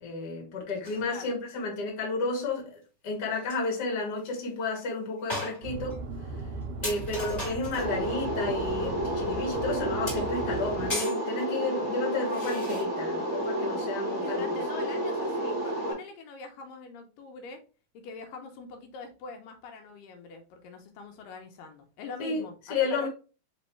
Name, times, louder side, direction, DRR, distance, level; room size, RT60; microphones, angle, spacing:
voice 1, 0.0-6.0 6.8-14.6 22.2-22.4 22.7-23.1, left 3 dB, 50° left, 1.2 m, -32 dB
sound 1, 0.8-1.0 3.0-3.1 3.3-3.6 4.2-4.3 4.7-4.8 5.3-6.0 6.4-6.5 6.8-7.9 10.1-11.2 12.3-12.8, left 1 dB, 20° left, 1.0 m, -37 dB
voice 2, 1.0-1.3 14.2-17.6 17.9-23.1, left 4 dB, 80° left, 2.2 m, -43 dB
sound 2, 5.6-10.9, right 3 dB, 75° right, 2.0 m, -38 dB
sound 3, 7.8-15.9, right 1 dB, 55° right, 0.7 m, -31 dB
5.2 x 3.1 x 3.1 m
omnidirectional pair, 4.1 m